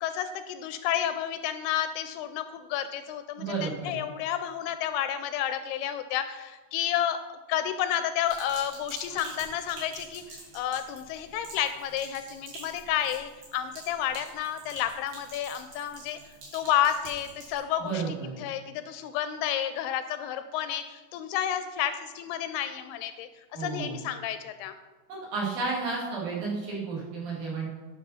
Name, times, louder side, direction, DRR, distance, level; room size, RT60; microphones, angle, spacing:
voice 1, 0.0-7.2 7.5-16.2 16.5-23.3 23.6-24.7, left 10 dB, 85° left, 10 dB, 2.4 m, -31 dB
voice 2, 3.4-3.9 17.8-18.4 23.5-24.0 25.1-27.7, right 4 dB, 55° right, -4 dB, 3.5 m, -32 dB
Sink (filling or washing), 8.2-17.6, right 2 dB, 70° right, 4.7 m, -47 dB
10.5 x 5.5 x 5.6 m, 1.2 s
omnidirectional pair, 4.7 m